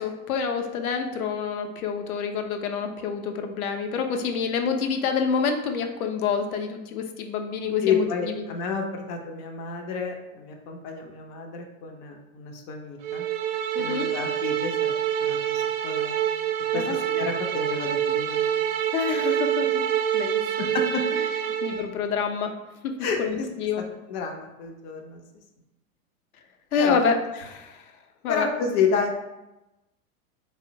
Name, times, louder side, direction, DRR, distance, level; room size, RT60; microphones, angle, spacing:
voice 1, 0.0-8.4 13.8-14.1 16.7-17.0 18.9-19.7 20.1-20.7 21.6-22.5 22.8-23.8 26.7-27.1 27.4-27.8 28.2-28.5, left 6 dB, 75° left, 5 dB, 0.6 m, -27 dB
voice 2, 7.8-13.2 13.8-14.9 15.2-16.2 16.7-18.4 20.6-21.0 23.0-23.5 24.1-25.2 26.8-27.0 28.3-29.1, left 5 dB, 30° left, 3 dB, 0.4 m, -30 dB
sound 1, 13.0-21.9, right 9 dB, 60° right, 0.5 m, -26 dB
3.7 x 2.0 x 2.6 m, 0.98 s
hypercardioid pair, 90°, 43 cm